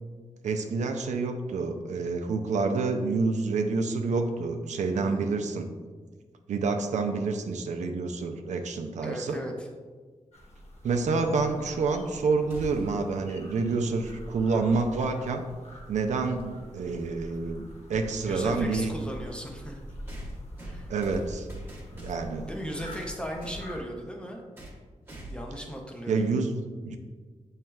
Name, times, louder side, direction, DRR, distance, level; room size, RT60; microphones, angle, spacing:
voice 1, 0.4-5.7 6.5-9.4 10.8-15.4 15.9-17.6 17.9-18.9 20.9-21.5 21.9-22.5 26.1-27.0, right 4 dB, 75° right, 5 dB, 0.4 m, -28 dB
voice 2, 4.9-5.3 9.0-9.7 18.2-19.8 20.6-20.9 22.5-24.4 25.3-26.3, equal, 10° left, 0 dB, 0.6 m, -37 dB
sound 1, 10.3-23.8, equal, 60° left, 0.9 m, -45 dB
sound 2, 12.5-13.1 15.2-15.3 16.4-16.5 20.1-22.4 22.7-23.7 24.6-24.8 25.1-25.6, right 1 dB, 20° right, 0.9 m, -42 dB
7.2 x 3.2 x 2.3 m, 1.4 s
wide cardioid pair, 150°, 12 cm